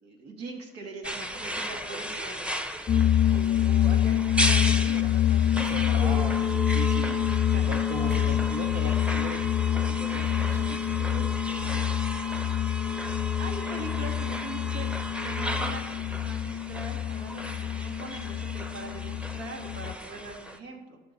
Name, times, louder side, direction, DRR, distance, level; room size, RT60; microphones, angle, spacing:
voice 1, 0.0-2.4 3.3-6.6 7.3-7.7 8.0-8.4 13.4-14.9 15.2-15.9 16.2-21.0, right 3 dB, 80° right, 1 dB, 2.6 m, -42 dB
sound 1, 1.0-20.6, right 1 dB, 5° right, 0.9 m, -35 dB
sound 2, 2.9-19.9, left 11 dB, 35° left, 0.4 m, -26 dB
voice 2, 5.5-7.2 7.7-11.3 11.7-11.8, right 3 dB, 45° right, 2 dB, 1.9 m, -39 dB
19.5 x 6.6 x 4.2 m, 1.2 s
cardioid pair, 110°, 17 cm